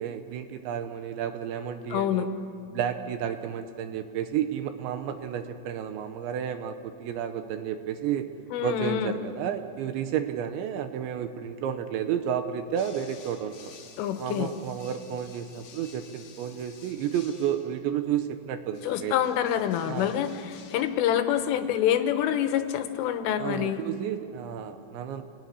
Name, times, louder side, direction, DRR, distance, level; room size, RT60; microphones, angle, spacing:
voice 1, 0.0-2.3 2.7-8.3 8.6-13.7 14.2-19.1 19.9-20.1 23.4-25.2, right 9 dB, 80° right, 8 dB, 3.0 m, -31 dB
voice 2, 1.9-2.3 8.5-9.2 14.0-14.5 18.8-23.8, left 10 dB, 80° left, 8 dB, 3.6 m, -26 dB
sound 1, 12.8-17.9 18.7-21.1, left 6 dB, 50° left, 3.0 m, -52 dB
28.0 x 18.5 x 10.0 m, 2.6 s
omnidirectional pair, 5.8 m